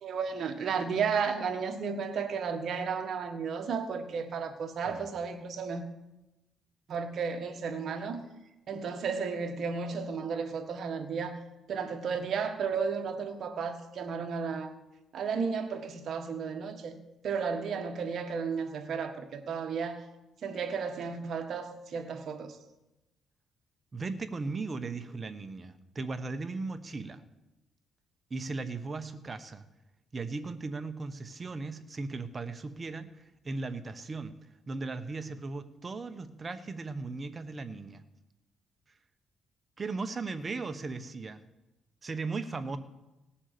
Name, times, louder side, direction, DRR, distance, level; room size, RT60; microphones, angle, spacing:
voice 1, 0.0-5.8 6.9-8.2 8.7-11.4 11.7-14.7 15.1-17.0 17.2-20.0 20.4-22.6, right 5 dB, 60° right, 1.5 m, -33 dB
voice 2, 23.9-27.2 28.3-29.6 30.1-34.3 34.7-38.0 39.8-41.4 42.0-42.8, right 3 dB, 30° right, 1.1 m, -37 dB
18.0 x 7.3 x 6.8 m
cardioid pair, 90°, 0 cm